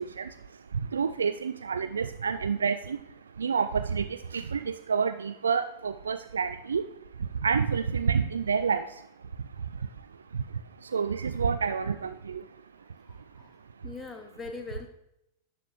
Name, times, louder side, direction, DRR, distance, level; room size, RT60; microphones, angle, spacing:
voice 1, 0.0-13.9, right 6 dB, 70° right, 11 dB, 0.3 m, -30 dB
voice 2, 13.0-13.5 13.8-14.9, left 4 dB, 15° left, 6 dB, 0.7 m, -41 dB
12.0 x 8.6 x 3.1 m, 0.84 s
figure-of-eight pair, 90°, 0 cm